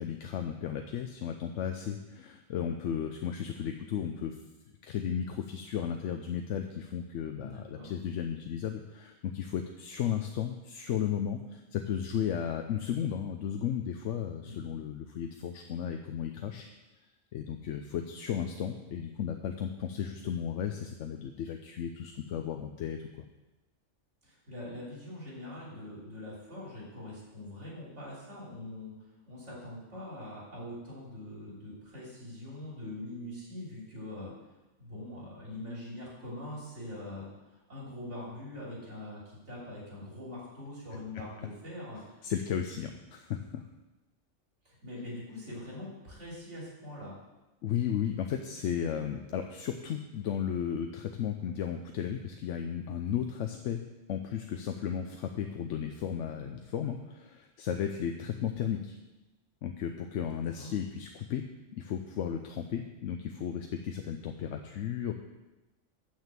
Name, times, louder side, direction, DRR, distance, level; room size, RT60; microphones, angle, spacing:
voice 1, 0.0-4.4 4.8-16.7 17.3-23.3 42.2-43.6 47.6-53.8 54.1-59.0 59.6-61.4 61.8-65.1, left 8 dB, 90° left, 5 dB, 0.9 m, -34 dB
voice 2, 7.3-7.9 14.4-14.7 24.2-28.9 29.3-34.3 34.8-42.2 44.6-47.1 60.1-60.7, left 1 dB, 80° right, -5 dB, 3.4 m, -43 dB
6.7 x 6.3 x 7.4 m, 1.0 s
omnidirectional pair, 1.2 m